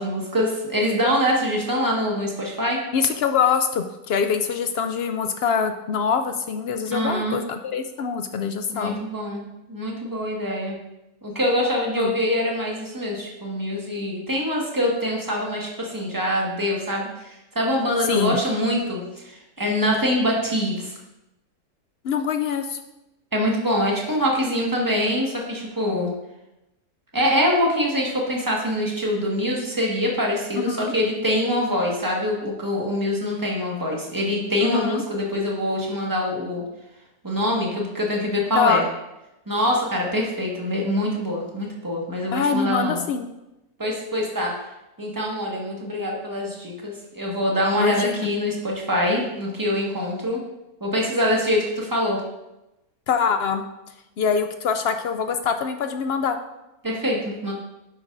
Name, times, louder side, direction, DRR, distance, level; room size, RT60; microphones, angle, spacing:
voice 1, 0.0-2.8 6.9-7.4 8.7-10.8 11.2-20.9 23.3-26.1 27.1-36.6 37.2-38.8 39.5-43.0 43.8-44.5 45.0-50.4 50.8-52.2 56.8-57.5, equal, 15° right, -2 dB, 1.6 m, -24 dB
voice 2, 2.9-9.0 12.0-12.1 18.0-18.4 22.0-22.8 30.6-30.9 34.6-35.0 38.5-38.8 42.3-43.3 47.7-48.3 53.1-53.6 54.2-56.4, left 6 dB, 75° left, 7 dB, 0.5 m, -24 dB
10.5 x 8.0 x 2.6 m, 0.94 s
omnidirectional pair, 1.6 m